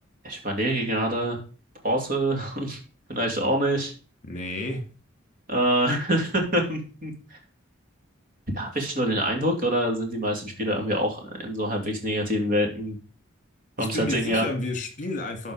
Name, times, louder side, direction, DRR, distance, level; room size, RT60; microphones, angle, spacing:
voice 1, 0.2-1.4 1.8-2.8 3.1-3.9 5.5-7.4 8.5-13.0 13.8-14.5, right 1 dB, 45° right, 3 dB, 2.9 m, -26 dB
voice 2, 4.2-4.8 13.8-15.5, left 2 dB, 40° left, 5 dB, 2.9 m, -31 dB
12.5 x 5.3 x 5.1 m, 0.36 s
head